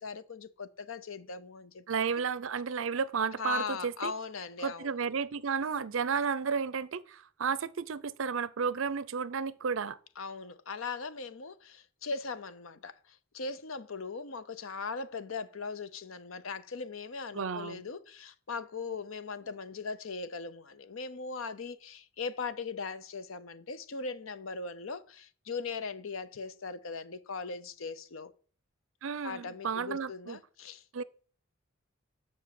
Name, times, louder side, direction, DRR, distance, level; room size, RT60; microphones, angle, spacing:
voice 1, 0.0-1.8 3.4-4.9 10.2-28.3 29.2-30.8, left 4 dB, 80° left, 0.7 m, -39 dB
voice 2, 1.9-4.1 4.6-10.0 17.3-17.8 29.0-30.4 30.9-31.0, right 6 dB, 75° right, 0.5 m, -32 dB
7.3 x 6.1 x 7.7 m
head